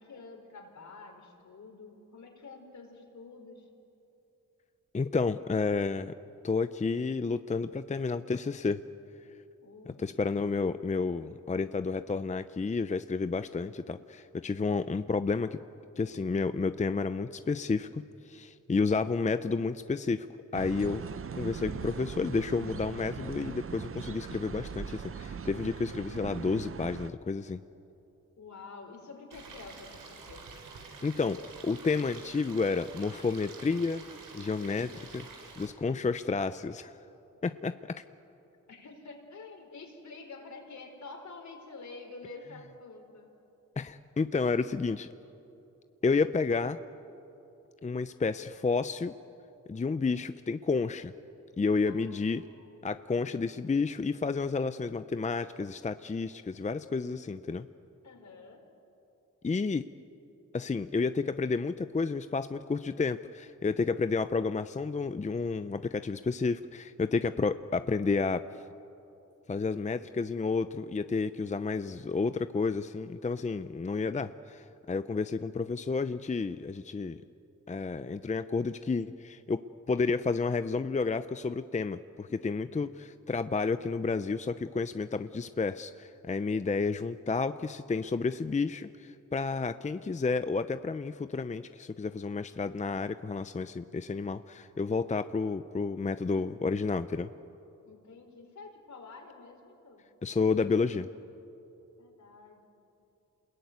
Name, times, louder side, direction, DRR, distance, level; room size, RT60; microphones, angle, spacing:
voice 1, 0.0-3.7 9.6-10.3 28.4-30.5 34.6-35.0 35.5-35.7 38.7-43.3 51.9-52.7 58.0-58.6 97.8-100.0 102.0-102.6, left 3 dB, 65° left, 3 dB, 4.9 m, -49 dB
voice 2, 4.9-6.1 6.4-8.8 10.0-15.6 16.0-20.3 20.5-27.6 31.0-31.4 31.6-34.0 34.3-35.2 35.6-36.9 37.4-38.0 43.8-45.1 46.0-46.8 47.8-49.1 49.7-51.1 51.6-52.4 52.8-57.7 59.4-59.8 60.5-68.4 69.5-77.2 77.7-79.6 79.9-97.3 100.2-101.1, left 4 dB, 25° left, 11 dB, 0.6 m, -31 dB
sound 1, 20.5-27.1, right 7 dB, 45° right, 0.8 m, -40 dB
Stream, 29.3-35.7, right 4 dB, 85° right, 4.3 m, -48 dB
29.0 x 21.5 x 9.5 m, 2.9 s
cardioid pair, 85°, 31 cm